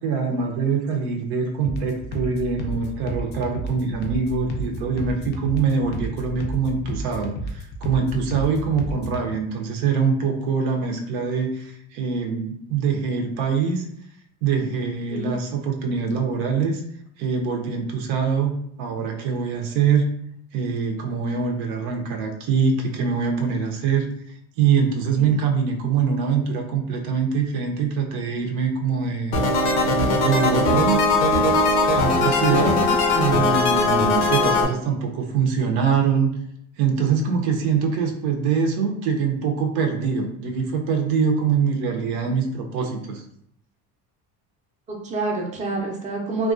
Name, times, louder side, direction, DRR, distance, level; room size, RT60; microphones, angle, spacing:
voice 1, 0.0-13.9 14.4-16.8 17.2-20.1 20.5-24.1 24.6-29.4 30.2-31.1 31.9-32.8 33.1-36.3 36.8-43.2, right 6 dB, 80° right, 2 dB, 0.6 m, -23 dB
sound 1, 1.6-9.3, equal, 30° left, 0.4 m, -32 dB
sound 2, 29.3-34.7, left 2 dB, 90° left, 0.7 m, -19 dB
voice 2, 32.5-32.9 45.0-46.5, right 2 dB, 20° right, -1 dB, 0.5 m, -27 dB
2.3 x 2.2 x 2.4 m, 0.70 s
cardioid pair, 125°, 34 cm